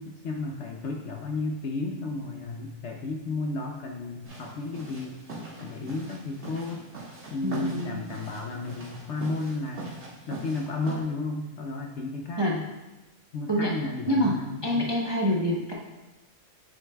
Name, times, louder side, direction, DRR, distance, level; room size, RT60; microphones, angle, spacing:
voice 1, 0.0-5.2 5.6-6.8 7.3-10.0 10.3-12.7 13.3-14.9, left 3 dB, 65° left, 2 dB, 0.8 m, -33 dB
sound 1, 4.2-11.0, right 2 dB, 50° right, 1.9 m, -42 dB
voice 2, 7.4-8.0 12.4-12.5 13.5-13.7 14.1-14.4 14.6-15.7, equal, 30° right, -3 dB, 0.5 m, -26 dB
8.8 x 6.5 x 2.3 m, 1.1 s
omnidirectional pair, 1.6 m